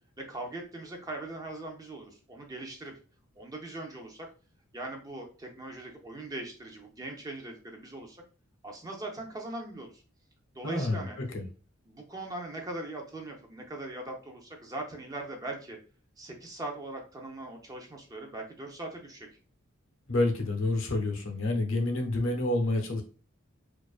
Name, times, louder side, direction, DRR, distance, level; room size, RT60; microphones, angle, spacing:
voice 1, 0.2-2.9 3.4-4.3 4.7-8.2 8.6-10.0 10.5-11.2 11.9-15.8 16.2-19.3, right 2 dB, 15° right, 1 dB, 0.4 m, -40 dB
voice 2, 10.6-11.0 11.3-11.4 20.1-23.0, left 2 dB, 70° left, 2 dB, 0.6 m, -28 dB
2.5 x 2.3 x 2.3 m, 0.36 s
head